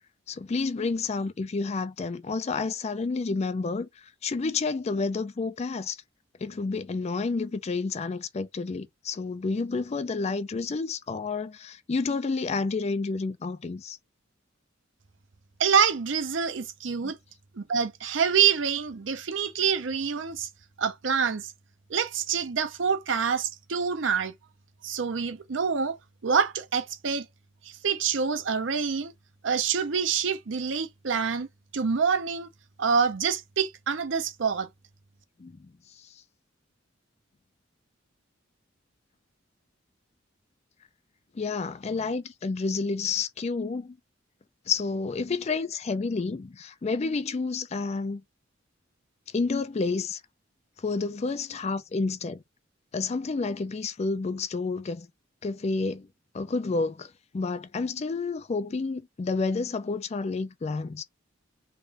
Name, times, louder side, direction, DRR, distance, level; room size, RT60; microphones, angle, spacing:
voice 1, 0.3-6.0 6.4-14.0 17.0-17.1 35.4-35.7 36.0-36.1 41.3-44.0 44.7-48.2 49.3-50.2 50.8-52.4 52.9-55.1 55.4-56.1 56.3-61.0, left 4 dB, 35° left, 0.4 m, -30 dB
voice 2, 15.6-17.2 17.6-20.5 20.8-21.5 21.9-24.3 24.8-26.0 26.2-27.3 27.8-29.1 29.4-31.5 31.7-32.5 32.8-34.7, right 6 dB, 70° right, 0.6 m, -26 dB
3.6 x 2.5 x 3.3 m
head